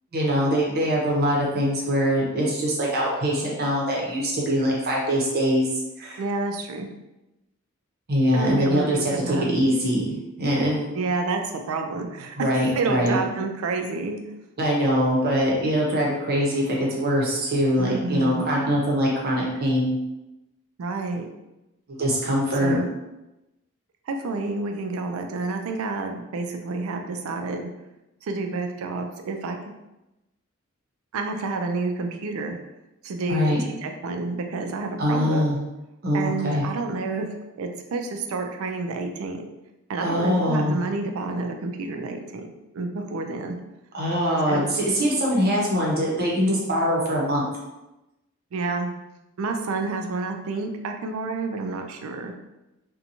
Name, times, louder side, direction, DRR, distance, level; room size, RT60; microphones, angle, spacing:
voice 1, 0.1-5.7 6.0-6.2 8.1-10.9 12.4-13.2 14.6-20.0 21.9-22.8 33.3-33.6 35.0-35.6 36.0-36.6 40.0-40.8 43.9-47.4, equal, 50° right, -3 dB, 0.7 m, -23 dB
voice 2, 6.2-6.9 8.3-9.5 10.9-14.2 17.8-18.5 20.8-21.3 22.6-22.9 24.1-27.7 28.2-29.6 31.1-32.6 33.0-33.6 33.8-35.4 36.1-37.3 37.6-39.4 39.9-42.5 42.7-43.6 44.5-44.7 48.5-48.9 49.4-52.3, right 3 dB, 80° right, 4 dB, 0.4 m, -29 dB
2.8 x 2.2 x 2.6 m, 0.96 s
head